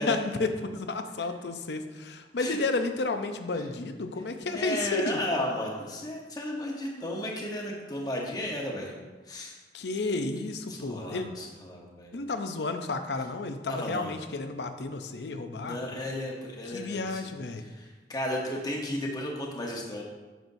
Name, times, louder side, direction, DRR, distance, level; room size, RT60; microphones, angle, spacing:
voice 1, 0.0-5.2 9.7-11.3 12.1-15.8 16.7-17.6, left 3 dB, 75° left, 7 dB, 0.6 m, -32 dB
voice 2, 4.5-8.9 9.3-9.6 10.7-12.1 13.7-14.1 15.6-17.3 17.6-20.0, left 1 dB, 20° left, -2 dB, 1.0 m, -34 dB
9.2 x 6.1 x 2.7 m, 1.3 s
head